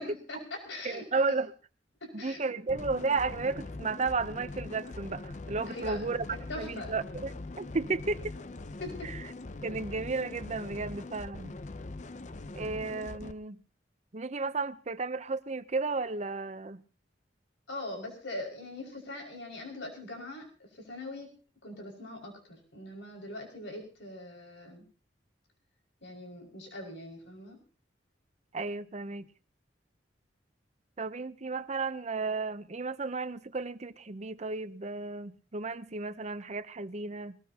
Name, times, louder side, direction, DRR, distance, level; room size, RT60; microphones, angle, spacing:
voice 1, 0.0-1.2 2.0-2.4 5.7-6.0 6.5-6.9 8.8-9.1 17.7-20.5 20.7-21.3 21.6-24.9 26.0-27.6, left 2 dB, 90° left, 5.6 m, -42 dB
voice 2, 0.8-1.5 2.1-6.3 6.6-8.3 9.0-9.2 9.6-11.5 12.6-13.6 14.1-16.8 28.5-29.3 31.0-37.4, right 3 dB, 40° right, 0.7 m, -33 dB
sound 1, 2.7-13.3, left 2 dB, 40° left, 0.7 m, -42 dB
21.5 x 19.5 x 2.9 m
head